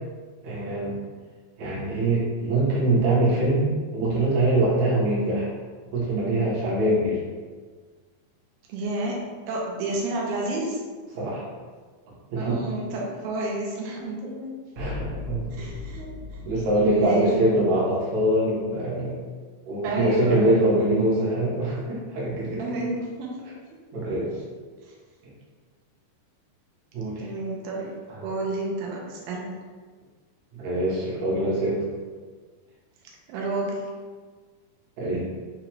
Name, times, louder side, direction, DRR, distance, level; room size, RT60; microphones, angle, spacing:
voice 1, 0.4-1.0 1.6-5.5 5.9-7.2 11.1-11.4 12.3-12.7 14.8-15.5 16.4-19.2 19.7-22.8 23.9-24.4 26.9-27.2 28.1-28.2 30.5-31.9 35.0-35.2, right 1 dB, 65° right, -6 dB, 2.0 m, -23 dB
voice 2, 8.7-9.2 9.5-10.8 12.4-14.5 15.5-16.4 16.8-17.3 19.8-20.7 22.6-23.4 24.8-24.9 27.2-27.9 28.2-29.6 33.3-33.8, right 2 dB, 85° right, -2 dB, 2.5 m, -30 dB
sound 1, 14.8-18.0, left 4 dB, 85° left, 1.7 m, -38 dB
6.1 x 2.5 x 3.0 m, 1.5 s
omnidirectional pair, 4.2 m